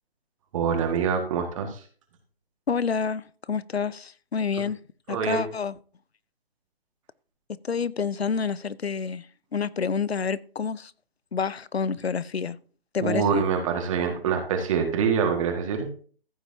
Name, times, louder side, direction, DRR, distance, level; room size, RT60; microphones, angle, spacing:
voice 1, 0.5-1.8 5.1-5.5 13.0-15.9, right 6 dB, 35° right, 1.8 m, -25 dB
voice 2, 2.7-4.8 5.1-5.7 7.5-9.3 9.5-10.9 11.3-12.6 12.9-13.4, left 6 dB, 90° left, 0.7 m, -28 dB
14.5 x 8.3 x 2.8 m
figure-of-eight pair, 145°, 30 cm